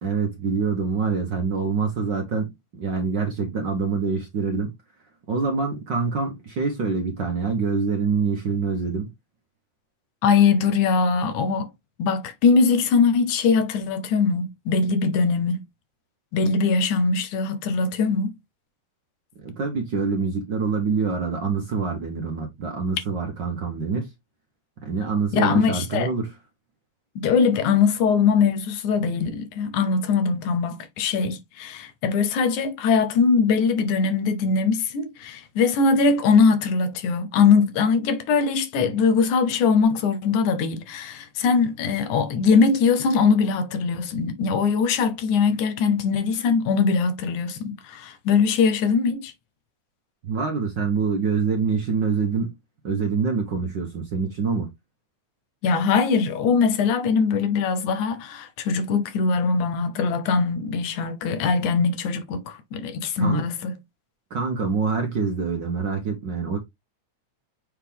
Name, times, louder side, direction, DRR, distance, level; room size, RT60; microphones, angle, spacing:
voice 1, 0.0-4.7 5.3-9.1 19.4-24.1 24.8-26.3 50.2-52.5 52.8-54.7 63.2-63.4 64.3-66.6, right 5 dB, 50° right, 1.4 m, -25 dB
voice 2, 10.2-11.7 12.0-15.6 16.3-18.3 25.3-26.1 27.2-49.3 55.6-63.7, left 5 dB, 85° left, 2.5 m, -21 dB
7.2 x 4.1 x 3.5 m
omnidirectional pair, 3.4 m